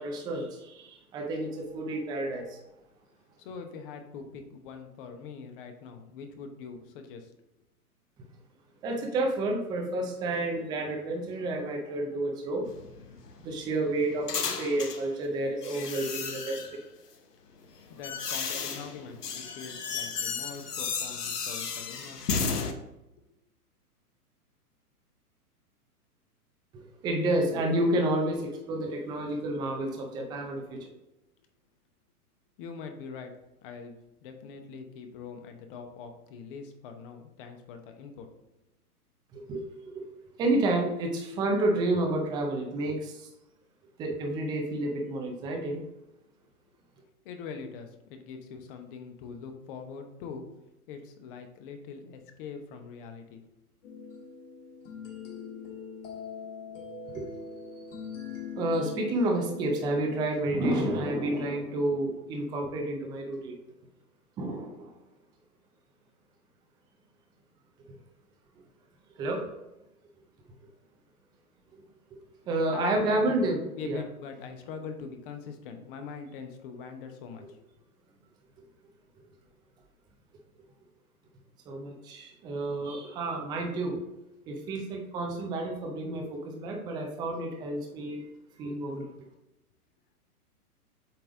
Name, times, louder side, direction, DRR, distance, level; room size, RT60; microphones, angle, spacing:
voice 1, 0.0-2.6 8.8-12.7 13.4-16.7 26.7-30.9 39.3-39.6 39.9-40.0 40.4-43.3 44.0-45.8 57.1-57.7 58.5-63.6 64.4-64.9 69.2-69.5 71.7-71.8 72.5-74.0 81.7-84.0 84.5-88.3 88.6-89.1, right 1 dB, 10° right, 1 dB, 0.5 m, -30 dB
voice 2, 3.4-7.3 17.9-22.4 32.6-33.3 33.6-33.9 34.2-38.3 47.2-50.5 50.9-53.4 72.7-73.5 73.8-77.7, left 5 dB, 35° left, 6 dB, 0.9 m, -43 dB
sound 1, 12.6-15.1 15.6-16.8 17.6-22.7, left 5 dB, 85° left, 1.0 m, -34 dB
sansula A minor, 53.8-60.2, left 5 dB, 55° left, 1.8 m, -41 dB
7.7 x 3.3 x 3.7 m, 0.92 s
hypercardioid pair, 125°, 46 cm